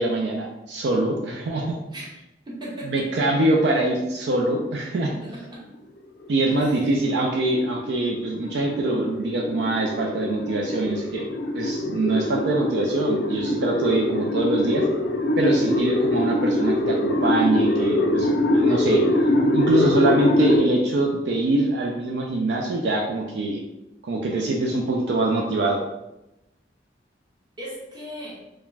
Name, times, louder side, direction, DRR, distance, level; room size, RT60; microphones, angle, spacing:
voice 1, 0.0-1.7 2.8-5.1 6.3-11.3 11.5-14.9 15.4-19.0 19.5-23.6 24.0-25.8, right 2 dB, 70° right, 0 dB, 0.3 m, -24 dB
voice 2, 2.5-3.3 5.2-5.6 6.5-6.9 27.6-28.4, equal, 25° right, -5 dB, 0.8 m, -37 dB
sound 1, 6.2-20.6, left 1 dB, 70° left, 0.5 m, -23 dB
2.4 x 2.1 x 3.1 m, 0.91 s
head